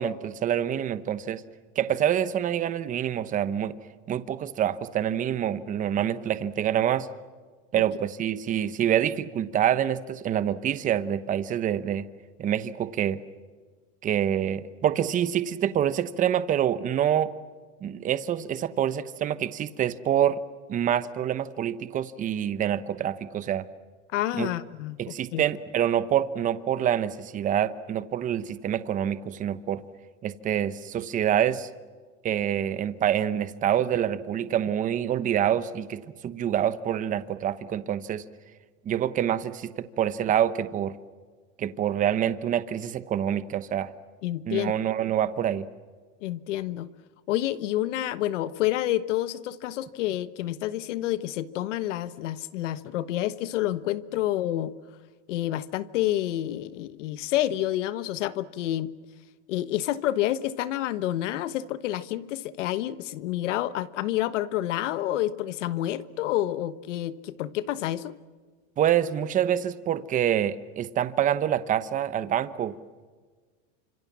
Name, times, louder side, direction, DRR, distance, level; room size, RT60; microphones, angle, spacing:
voice 1, 0.0-1.4 1.8-3.7 4.1-7.1 7.7-12.0 12.4-13.2 14.0-17.3 17.8-20.4 20.7-23.7 24.3-24.5 25.0-29.8 30.2-31.7 32.2-38.2 38.8-41.0 41.6-43.9 44.5-45.7 68.8-72.7, right 10 dB, 20° right, 14 dB, 1.0 m, -26 dB
voice 2, 24.1-25.4 44.2-44.7 46.2-46.9 47.3-54.7 55.3-58.9 59.5-68.2, left 13 dB, 80° left, 15 dB, 1.3 m, -29 dB
28.5 x 26.0 x 7.4 m, 1.5 s
supercardioid pair, 155°, 36 cm